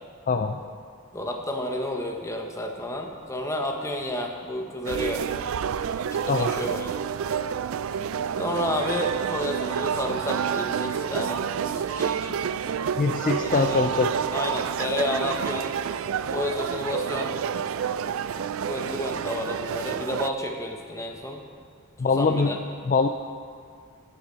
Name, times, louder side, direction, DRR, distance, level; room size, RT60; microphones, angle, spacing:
voice 1, 0.3-0.6 6.3-6.5 13.0-14.1 22.0-22.5 22.8-23.1, left 4 dB, 35° left, 5 dB, 0.4 m, -23 dB
voice 2, 1.1-5.2 6.1-7.0 8.4-12.4 13.4-14.0 14.3-15.7 16.3-17.3 18.0-18.1 18.7-21.4 22.2-22.6, left 1 dB, 15° left, 2 dB, 0.9 m, -31 dB
sound 1, 4.8-20.3, right 7 dB, 60° right, 0.3 m, -29 dB
14.5 x 8.8 x 4.0 m, 2.1 s
head